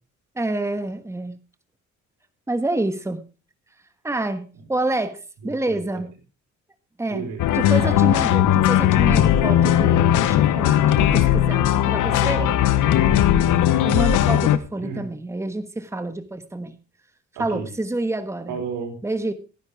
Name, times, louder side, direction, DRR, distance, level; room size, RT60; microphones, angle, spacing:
voice 1, 0.3-1.4 2.5-3.2 4.0-6.1 7.0-7.3 7.5-12.4 13.8-16.8 17.4-18.6 19.0-19.3, right 2 dB, 10° right, 9 dB, 1.4 m, -27 dB
voice 2, 7.1-7.5 12.0-13.3 14.8-15.0 17.3-17.7 18.5-18.9, right 5 dB, 90° right, 4 dB, 4.8 m, -32 dB
sound 1, 7.4-14.6, left 11 dB, 85° left, 1.1 m, -18 dB
17.0 x 10.0 x 3.5 m, 0.33 s
cardioid pair, 90°, 30 cm